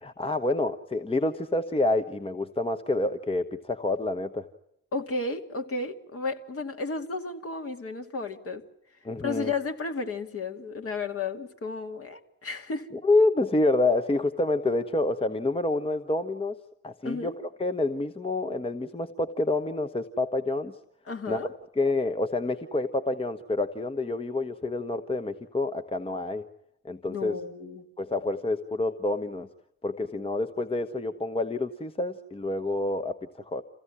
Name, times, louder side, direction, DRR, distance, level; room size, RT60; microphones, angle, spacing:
voice 1, 0.0-4.5 9.0-9.5 13.0-16.6 16.8-17.3 17.6-20.8 21.3-21.4 21.8-26.4 26.8-27.4 28.0-29.5 29.8-33.6, left 2 dB, 15° left, 7 dB, 1.2 m, -28 dB
voice 2, 4.9-8.6 9.2-12.9 17.0-17.3 21.1-21.5 27.1-27.9, left 3 dB, 40° left, 4 dB, 2.4 m, -33 dB
27.5 x 16.0 x 9.9 m, 0.82 s
hypercardioid pair, 50°, 34 cm